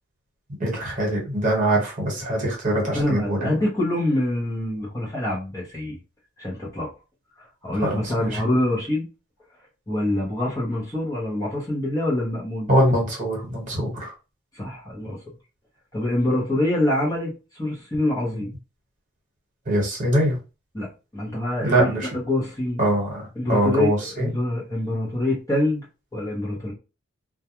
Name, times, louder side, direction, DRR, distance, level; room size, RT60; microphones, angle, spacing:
voice 1, 0.6-3.5 7.7-8.4 12.7-14.1 19.7-20.4 21.6-22.2 22.8-24.3, right 1 dB, 40° right, -2 dB, 1.2 m, -23 dB
voice 2, 2.9-6.0 6.4-6.9 7.6-9.0 9.9-12.7 14.5-15.2 15.9-18.5 20.7-20.9 21.1-21.9 22.1-22.8 23.4-25.8 26.1-26.7, left 1 dB, 15° left, -5 dB, 0.8 m, -25 dB
2.3 x 2.2 x 2.9 m, 0.31 s
head